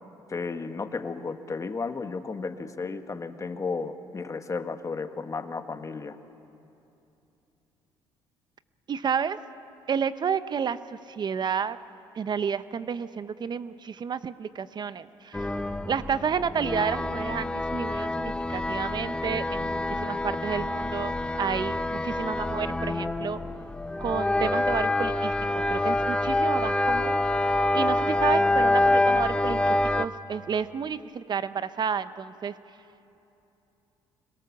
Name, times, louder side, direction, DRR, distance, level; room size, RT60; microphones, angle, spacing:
voice 1, 0.3-6.2, left 4 dB, 30° left, 9 dB, 1.4 m, -33 dB
voice 2, 8.9-9.4 9.9-10.8 11.1-11.8 12.2-15.5 15.8-23.4 24.0-25.3 25.7-27.2 27.7-32.5, right 7 dB, 45° right, 13 dB, 0.8 m, -30 dB
sound 1, 15.3-30.1, left 2 dB, 10° left, 0.8 m, -26 dB
26.0 x 22.5 x 7.2 m, 2.9 s
cardioid pair, 85°, 10 cm